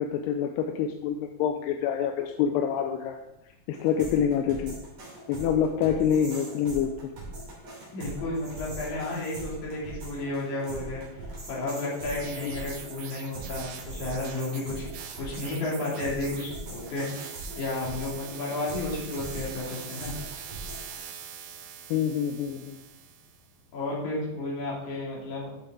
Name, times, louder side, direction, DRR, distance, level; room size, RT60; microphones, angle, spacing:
voice 1, 0.0-3.2 3.7-4.8 5.3-7.1 12.4-12.5 21.9-22.8, left 8 dB, 85° left, 5 dB, 2.7 m, -26 dB
sound 1, 3.7-20.9, right 1 dB, 40° right, 3.9 m, -41 dB
voice 2, 7.9-11.0 11.5-14.8 15.2-20.2 23.7-25.5, left 2 dB, 50° left, -5 dB, 3.8 m, -32 dB
sound 2, 12.1-23.5, right 8 dB, 80° right, 1.8 m, -43 dB
11.5 x 6.8 x 3.7 m, 0.87 s
omnidirectional pair, 4.7 m